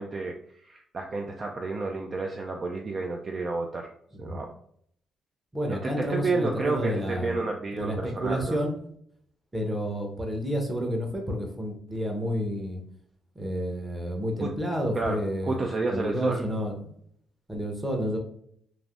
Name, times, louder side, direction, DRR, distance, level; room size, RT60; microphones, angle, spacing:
voice 1, 0.0-3.9 4.2-4.5 5.8-8.6 14.4-14.5 14.9-16.4, right 3 dB, 40° right, 2 dB, 0.3 m, -30 dB
voice 2, 5.5-7.4 7.7-8.7 9.5-12.8 13.4-15.6 15.9-16.9 17.5-18.2, equal, 15° right, 2 dB, 0.8 m, -30 dB
3.3 x 2.5 x 2.4 m, 0.66 s
cardioid pair, 90°, 0 cm